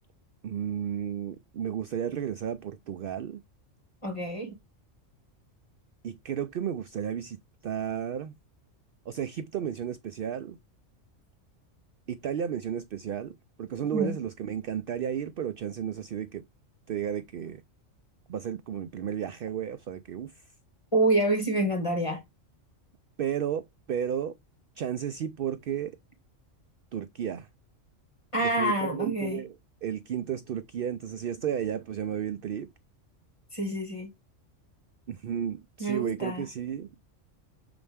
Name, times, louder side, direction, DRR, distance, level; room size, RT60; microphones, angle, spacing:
voice 1, 0.4-3.4 6.0-7.4 7.6-8.3 9.1-10.6 12.1-16.4 16.9-17.6 18.3-20.3 23.2-24.3 24.8-25.9 26.9-27.5 28.5-29.5 29.8-32.7 35.1-36.9, right 9 dB, 60° right, 0.6 m, -33 dB
voice 2, 4.0-4.6 13.9-14.2 20.9-22.2 28.3-29.4 33.5-34.1 35.8-36.4, right 1 dB, 25° left, 1.7 m, -27 dB
7.0 x 4.3 x 3.4 m
omnidirectional pair, 1.3 m